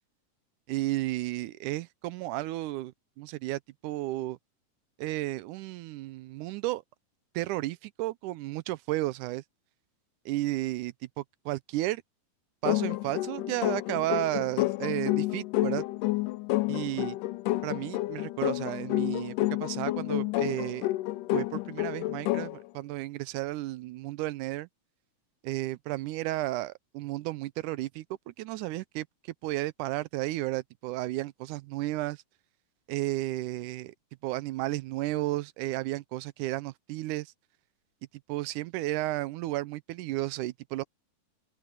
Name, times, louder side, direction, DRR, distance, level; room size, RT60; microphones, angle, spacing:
voice 1, 0.7-4.4 5.0-6.8 7.4-9.4 10.3-12.0 12.6-15.8 16.7-17.2 17.6-20.9 21.3-24.7 25.4-29.1 29.4-32.2 32.9-33.9 34.2-37.3 38.3-40.8, right 17 dB, 85° right, 2.1 m, -33 dB
sound 1, 12.6-22.6, left 18 dB, 90° left, 2.2 m, -30 dB
open air
omnidirectional pair, 3.7 m